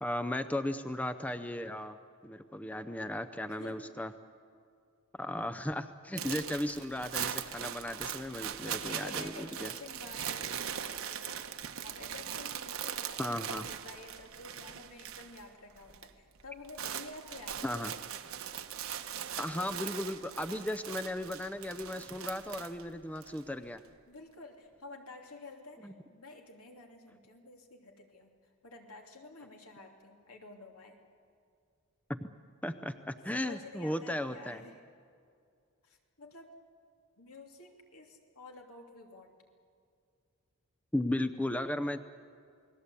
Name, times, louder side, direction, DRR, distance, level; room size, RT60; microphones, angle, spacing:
voice 1, 0.0-2.0 2.2-4.1 5.2-9.7 13.2-13.7 17.6-17.9 19.3-23.8 25.8-25.9 32.1-32.2 32.6-34.6 40.9-42.0, left 1 dB, 5° left, 9 dB, 0.5 m, -36 dB
voice 2, 3.5-3.9 8.6-18.0 19.5-20.0 24.1-28.3 28.6-31.0 33.3-34.8 35.8-36.5 37.2-39.3, left 3 dB, 80° left, 2 dB, 2.8 m, -51 dB
sound 1, 6.2-15.5 15.7-16.1 16.4-23.4, right 9 dB, 65° right, 1.1 m, -40 dB
28.5 x 20.0 x 8.3 m, 2.3 s
head